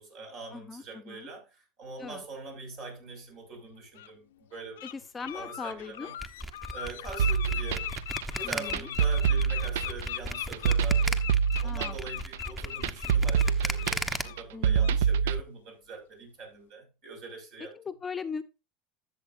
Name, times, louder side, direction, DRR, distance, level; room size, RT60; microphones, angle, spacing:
voice 1, 0.0-5.0 5.3-6.1 6.7-7.9 8.3-11.3 11.6-17.7, right 3 dB, 60° right, 5.8 m, -43 dB
voice 2, 0.5-1.3 2.0-2.2 4.8-6.1 8.4-8.9 11.6-12.0 14.5-15.0 17.6-18.4, left 5 dB, 25° left, 0.7 m, -39 dB
Bird, 3.1-3.2 3.9-4.1 4.5-4.9 5.2-13.9 14.2-14.4 14.8-15.0, left 13 dB, 85° left, 0.5 m, -39 dB
sound 1, 6.2-14.2, right 1 dB, 10° right, 1.0 m, -35 dB
sound 2, 7.2-15.4, right 7 dB, 80° right, 0.4 m, -26 dB
12.5 x 7.2 x 2.6 m
hypercardioid pair, 95°, 0 cm